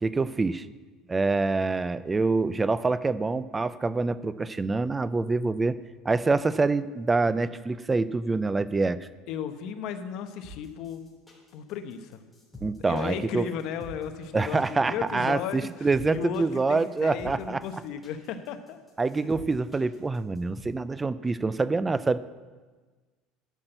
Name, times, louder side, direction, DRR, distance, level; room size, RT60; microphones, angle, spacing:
voice 1, 0.0-0.7 1.1-5.8 6.1-9.0 12.6-13.4 14.3-17.6 19.0-22.2, right 3 dB, 15° right, 16 dB, 0.4 m, -26 dB
voice 2, 9.3-11.0 11.5-12.2 12.8-18.8, left 8 dB, 60° left, 8 dB, 1.0 m, -35 dB
sound 1, 10.4-20.6, left 1 dB, 5° left, 3.3 m, -46 dB
11.5 x 5.9 x 7.9 m, 1.3 s
cardioid pair, 145°, 0 cm